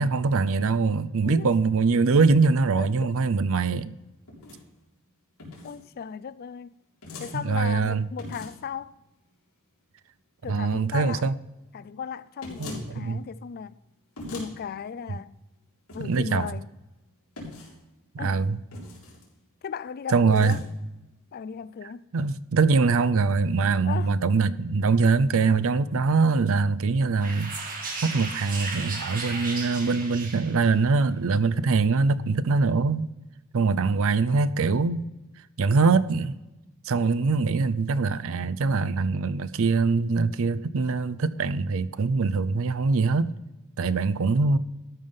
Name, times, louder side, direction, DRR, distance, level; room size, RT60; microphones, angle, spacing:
voice 1, 0.0-3.9 7.3-8.0 10.5-11.4 12.6-13.2 16.0-16.5 18.1-18.6 20.1-20.6 22.1-27.7 28.0-33.1 33.5-35.1 35.6-36.4 36.9-43.3 43.8-44.6, right 4 dB, 65° right, 0.5 m, -23 dB
voice 2, 1.2-1.5 2.8-2.9 5.6-6.8 7.2-9.0 10.4-11.3 11.7-13.8 14.3-15.3 15.9-16.7 18.2-18.4 19.6-20.6 21.3-22.1 23.8-24.1, left 7 dB, 45° left, 0.3 m, -36 dB
sound 1, 4.3-4.6 5.4-5.8 7.0-7.4 8.2-8.7 12.4-12.9 14.2-14.5 15.9-16.3 17.4-17.8 18.7-19.2 20.2-20.6, left 2 dB, 75° left, 3.7 m, -40 dB
sound 2, 27.2-30.8, right 3 dB, 40° right, 1.8 m, -35 dB
13.0 x 5.6 x 5.4 m
head